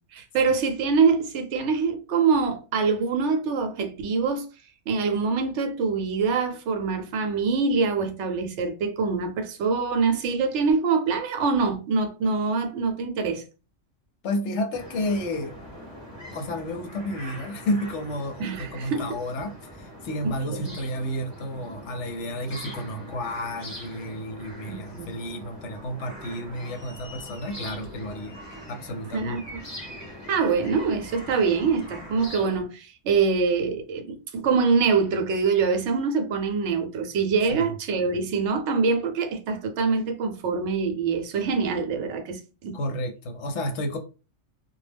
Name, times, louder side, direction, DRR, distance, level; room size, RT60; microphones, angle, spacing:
voice 1, 0.1-4.4 4.9-13.4 18.4-19.0 20.2-20.7 24.7-25.1 29.1-29.6 30.3-42.8, right 5 dB, 70° right, 0.9 m, -24 dB
voice 2, 14.2-15.5 16.3-28.4 28.7-29.3 37.5-37.7 42.7-44.0, left 1 dB, 70° left, 0.9 m, -31 dB
sound 1, 14.7-32.6, equal, 15° left, 0.9 m, -42 dB
2.3 x 2.0 x 3.2 m
omnidirectional pair, 1.3 m